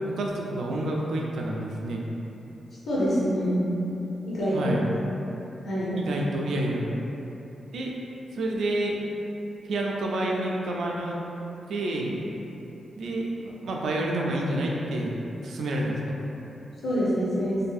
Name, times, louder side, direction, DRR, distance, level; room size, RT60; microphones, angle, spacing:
voice 1, 0.0-2.0 4.5-4.9 6.0-6.9 7.7-7.9 8.3-9.0 9.6-11.2 11.7-12.1 12.9-15.1 15.4-16.1, right 1 dB, 85° right, -2 dB, 0.3 m, -29 dB
voice 2, 2.9-3.6 4.2-4.7 5.6-5.9 16.8-17.6, equal, 65° left, -8 dB, 0.8 m, -25 dB
2.6 x 2.5 x 2.3 m, 3.0 s
cardioid pair, 105°, 0 cm